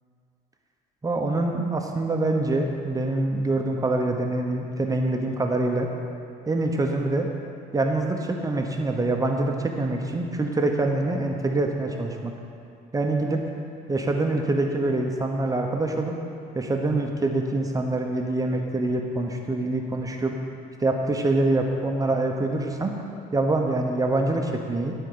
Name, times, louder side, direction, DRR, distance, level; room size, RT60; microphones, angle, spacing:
voice 1, 1.0-5.9 6.5-7.3 7.7-12.3 12.9-13.4 13.9-16.1 16.5-20.3 20.8-22.9 23.3-24.9, right 2 dB, 20° right, 2 dB, 0.9 m, -25 dB
13.0 x 4.5 x 6.7 m, 2.5 s
cardioid pair, 110°, 17 cm